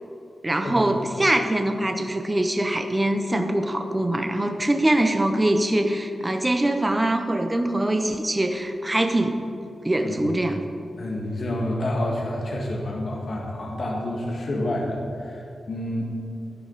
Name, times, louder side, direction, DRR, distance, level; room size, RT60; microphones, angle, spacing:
voice 1, 0.4-9.4 9.8-10.6, right 1 dB, 15° right, 5 dB, 0.7 m, -23 dB
voice 2, 10.9-16.0, left 1 dB, 50° left, -2 dB, 1.6 m, -28 dB
13.0 x 11.5 x 4.0 m, 2.6 s
wide cardioid pair, 160°, 0 cm